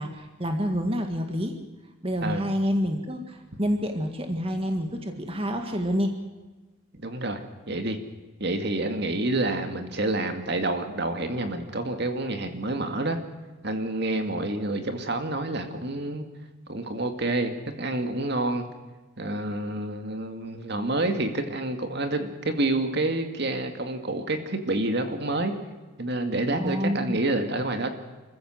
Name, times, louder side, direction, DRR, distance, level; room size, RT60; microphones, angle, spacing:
voice 1, 0.0-1.6 2.0-6.1 26.6-27.2, equal, 30° right, 5 dB, 1.8 m, -28 dB
voice 2, 6.9-7.4 7.7-8.0 8.4-13.2 13.6-16.3 16.7-17.5 17.8-18.7 19.2-25.5 26.0-27.9, right 2 dB, 55° right, 6 dB, 2.2 m, -28 dB
27.0 x 15.0 x 7.9 m, 1.2 s
head